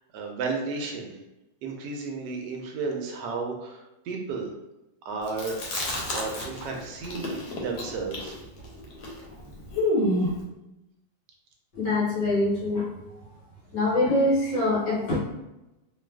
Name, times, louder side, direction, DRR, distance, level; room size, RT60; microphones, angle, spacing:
voice 1, 0.1-1.2 1.6-4.5 5.0-5.6 6.1-8.4, right 4 dB, 75° right, 1 dB, 1.1 m, -33 dB
Chewing mastication, 5.3-6.7 7.0-10.4, left 1 dB, 90° left, 1.4 m, -28 dB
voice 2, 11.7-12.9 13.7-15.1, left 2 dB, 65° left, -6 dB, 1.5 m, -24 dB
3.2 x 2.3 x 2.2 m, 0.94 s
omnidirectional pair, 2.1 m